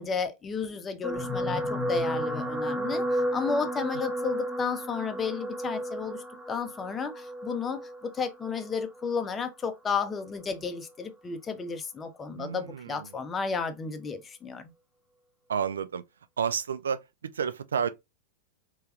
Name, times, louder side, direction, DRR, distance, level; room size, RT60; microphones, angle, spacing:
voice 1, 0.0-6.2 6.5-14.7, left 5 dB, 20° left, 0.6 m, -33 dB
sound 1, 1.0-9.5 10.3-10.5 10.8-10.9, equal, 10° right, 1.0 m, -32 dB
voice 2, 12.4-13.1 15.5-16.0 16.4-17.9, right 7 dB, 75° right, 0.3 m, -31 dB
3.3 x 3.0 x 2.3 m
figure-of-eight pair, 95°, 0 cm